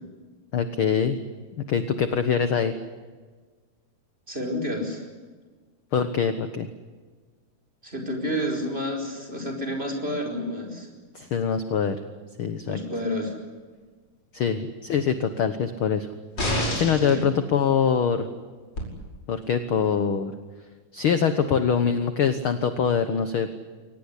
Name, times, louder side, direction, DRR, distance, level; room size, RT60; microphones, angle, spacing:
voice 1, 0.5-1.2 1.7-2.8 5.9-6.7 11.1-12.0 12.4-12.8 14.3-16.1 16.7-18.3 19.3-20.3 20.9-23.5, left 7 dB, 60° left, 10 dB, 1.5 m, -24 dB
voice 2, 4.3-5.0 7.8-10.9 12.6-13.4 17.0-17.2, equal, 15° right, 3 dB, 4.8 m, -30 dB
sound 1, 16.4-17.2 18.8-18.9, left 1 dB, 30° left, 6.1 m, -27 dB
24.0 x 19.0 x 10.0 m, 1.4 s
omnidirectional pair, 3.6 m